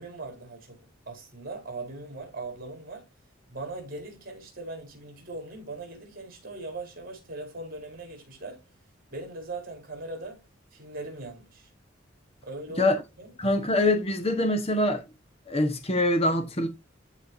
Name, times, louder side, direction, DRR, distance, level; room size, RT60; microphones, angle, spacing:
voice 1, 0.0-3.1 3.5-8.7 9.1-11.7 12.4-13.4, right 2 dB, 50° right, 4.7 m, -40 dB
voice 2, 13.4-15.0 15.5-16.7, left 1 dB, 30° left, 1.3 m, -24 dB
14.0 x 4.9 x 2.7 m
head